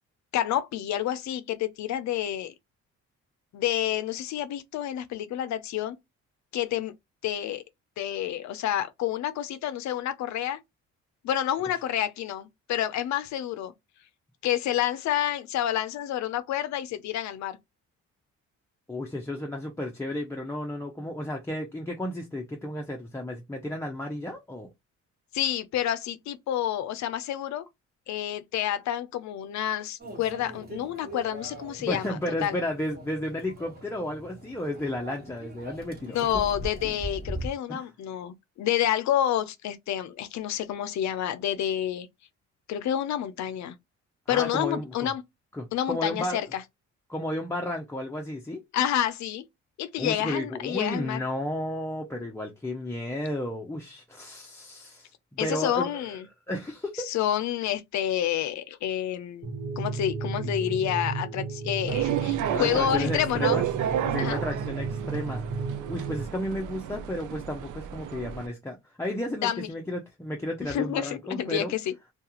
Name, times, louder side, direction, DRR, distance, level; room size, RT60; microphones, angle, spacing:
voice 1, 0.3-2.5 3.5-6.0 6.5-6.9 7.2-7.6 8.0-10.6 11.2-13.7 14.4-17.6 25.3-27.7 28.1-32.6 36.1-42.1 42.7-43.8 44.3-45.2 45.7-46.6 48.7-49.4 49.8-51.2 55.4-56.3 57.1-59.5 59.8-63.6 64.2-64.4 69.4-69.7 70.7-71.9, left 11 dB, 65° left, 0.5 m, -29 dB
voice 2, 18.9-24.7 31.8-36.2 37.7-37.9 44.3-45.1 45.5-46.4 47.1-48.6 50.0-56.2 56.5-57.1 62.5-63.6 64.0-65.4 65.9-71.7, left 1 dB, 10° left, 0.5 m, -33 dB
Microwave oven, 30.0-37.5, right 1 dB, 30° right, 1.2 m, -40 dB
sound 1, 59.4-66.3, right 4 dB, 65° right, 1.2 m, -33 dB
sound 2, 61.9-68.5, right 10 dB, 80° right, 0.5 m, -31 dB
2.3 x 2.3 x 2.8 m
cardioid pair, 90°, 30 cm